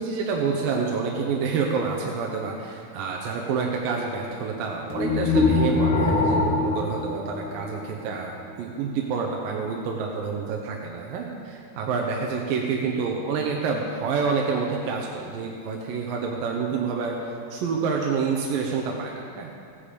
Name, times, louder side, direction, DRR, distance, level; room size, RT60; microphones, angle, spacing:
voice 1, 0.0-19.5, right 5 dB, 75° right, 0 dB, 2.5 m, -28 dB
sound 1, 4.9-8.1, left 3 dB, 50° left, 1.6 m, -23 dB
15.0 x 10.0 x 5.1 m, 2.4 s
omnidirectional pair, 4.3 m